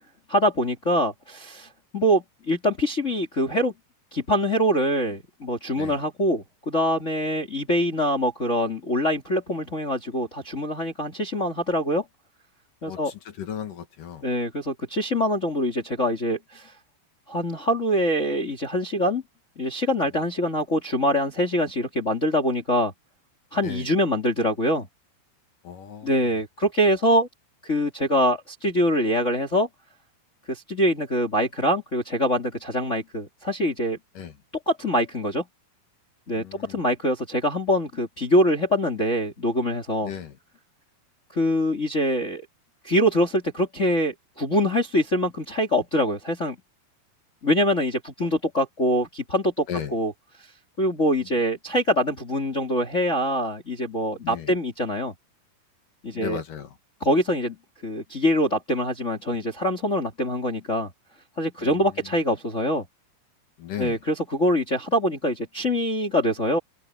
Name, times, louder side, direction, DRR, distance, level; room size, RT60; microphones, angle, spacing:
voice 1, 0.3-3.7 4.1-12.0 12.8-13.1 14.2-16.7 17.3-19.2 19.6-22.9 23.5-24.9 26.0-27.3 27.6-29.7 30.5-34.0 34.7-35.5 36.3-40.1 41.3-42.4 42.8-46.6 47.4-49.7 49.9-50.1 50.8-55.1 56.0-56.4 57.0-57.6 57.8-60.9 61.4-62.9 63.8-66.6, equal, 20° left, 2.3 m, -24 dB
voice 2, 12.8-14.3 23.5-23.9 25.6-26.3 34.1-34.4 36.3-36.8 40.0-40.4 48.2-48.3 49.7-50.0 54.2-54.5 56.1-56.8 61.6-62.1 63.6-64.0, left 8 dB, 60° left, 3.2 m, -36 dB
omnidirectional pair, 4.8 m